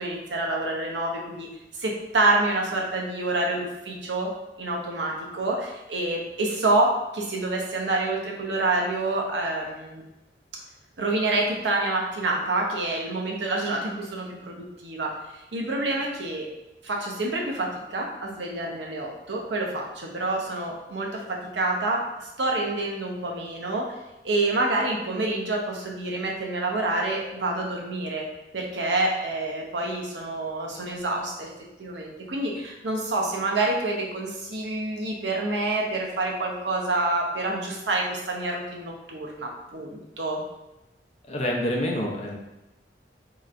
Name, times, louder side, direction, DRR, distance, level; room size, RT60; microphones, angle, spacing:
voice 1, 0.0-1.5 1.8-4.3 4.6-10.0 11.0-16.5 16.8-23.9 24.2-28.3 28.5-31.5 31.8-40.4, right 2 dB, 80° right, -1 dB, 0.8 m, -27 dB
voice 2, 41.3-42.4, left 1 dB, 35° left, -1 dB, 0.6 m, -27 dB
4.4 x 2.9 x 2.5 m, 0.97 s
head